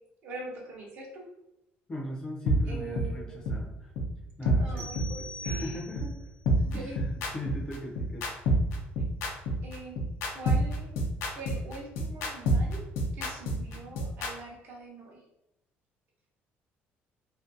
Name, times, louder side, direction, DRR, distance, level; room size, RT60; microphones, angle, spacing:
voice 1, 0.2-1.3 2.7-3.3 4.6-5.8 6.6-7.0 9.6-10.0 10.3-10.9 11.4-15.2, right 2 dB, 50° right, -1 dB, 0.6 m, -43 dB
voice 2, 1.9-3.9 4.4-6.1 6.7-8.3 13.6-13.9, left 1 dB, 20° left, -2 dB, 0.5 m, -40 dB
sound 1, 2.5-2.6 2.9-3.1 3.4-3.5 4.0-4.1 4.4-4.6 4.9-5.1 5.4-5.5 6.0-6.1 6.4-14.3, right 1 dB, 90° left, 0.5 m, -27 dB
sound 2, 4.8-6.3, left 1 dB, 90° right, 1.0 m, -43 dB
2.5 x 2.2 x 2.5 m, 0.87 s
cardioid pair, 175°, 4 cm